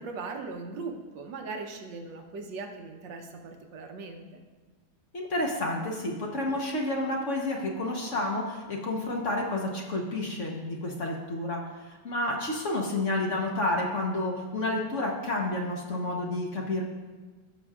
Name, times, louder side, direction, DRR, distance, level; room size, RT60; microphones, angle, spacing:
voice 1, 0.0-4.4, right 4 dB, 90° right, 3 dB, 1.6 m, -39 dB
voice 2, 5.1-16.8, left 2 dB, 50° left, 0 dB, 1.2 m, -30 dB
15.0 x 6.1 x 2.4 m, 1.3 s
omnidirectional pair, 1.9 m